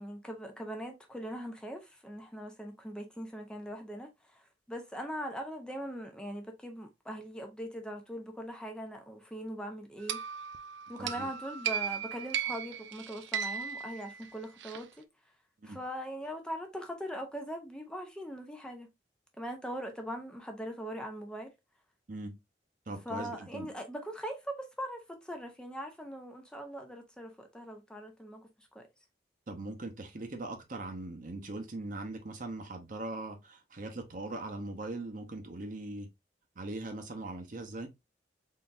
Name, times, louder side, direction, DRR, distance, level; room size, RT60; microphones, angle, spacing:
voice 1, 0.0-4.4 4.7-10.2 10.9-14.9 15.6-18.9 19.4-21.5 23.1-28.9, equal, 5° left, 0.6 m, -41 dB
sound 1, 10.1-14.8, right 8 dB, 85° right, 0.4 m, -36 dB
voice 2, 11.0-11.3 15.6-15.8 22.1-22.3 22.9-23.7 29.5-36.1 36.6-37.9, right 2 dB, 50° right, 0.9 m, -40 dB
3.8 x 3.4 x 2.5 m
head